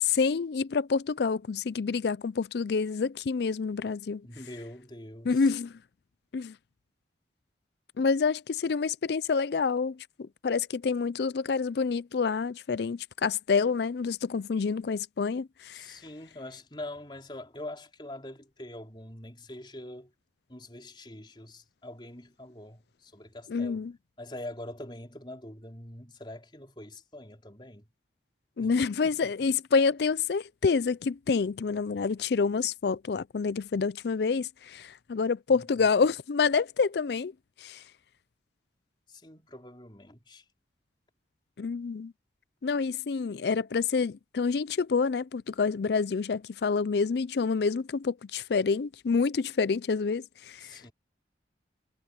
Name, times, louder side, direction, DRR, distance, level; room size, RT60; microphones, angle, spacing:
voice 1, 0.0-4.2 5.3-5.7 6.3-6.6 8.0-15.9 23.5-23.9 28.6-37.3 37.6-37.8 41.6-42.1 42.6-50.8, left 5 dB, 60° left, 0.4 m, -28 dB
voice 2, 4.2-5.5 15.7-20.1 20.5-23.8 24.2-27.9 28.6-28.7 29.0-29.5 35.5-35.9 39.1-40.4 50.6-50.9, left 1 dB, 25° left, 4.3 m, -44 dB
head